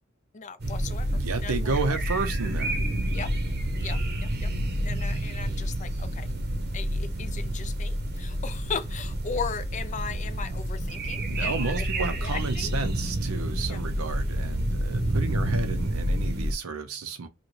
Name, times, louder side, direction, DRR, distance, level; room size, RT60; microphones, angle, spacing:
voice 1, 0.3-2.0 3.1-3.3 3.8-4.5 4.8-6.3 6.7-11.8 12.2-12.7 13.7-13.8, left 6 dB, 35° left, 0.4 m, -37 dB
sound 1, 0.6-16.5, right 1 dB, 50° right, 0.8 m, -29 dB
voice 2, 1.1-2.8 11.3-17.3, right 4 dB, 90° right, 0.6 m, -32 dB
5.0 x 2.2 x 3.2 m
head